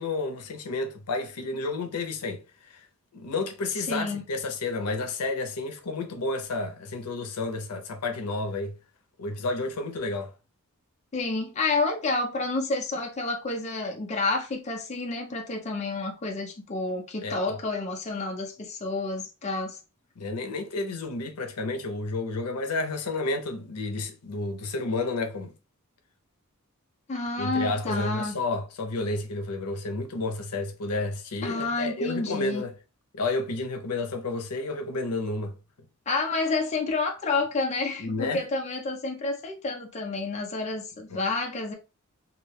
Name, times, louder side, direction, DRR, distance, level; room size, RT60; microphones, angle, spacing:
voice 1, 0.0-2.8 3.1-8.7 9.2-10.3 17.2-17.6 20.2-25.5 27.4-32.7 33.1-35.5 38.0-38.4 41.1-41.2, left 3 dB, 90° left, 0.5 m, -31 dB
voice 2, 3.9-4.2 11.1-19.8 27.1-28.4 31.4-32.6 36.1-41.7, left 3 dB, 30° left, 0.4 m, -29 dB
2.3 x 2.2 x 3.1 m
head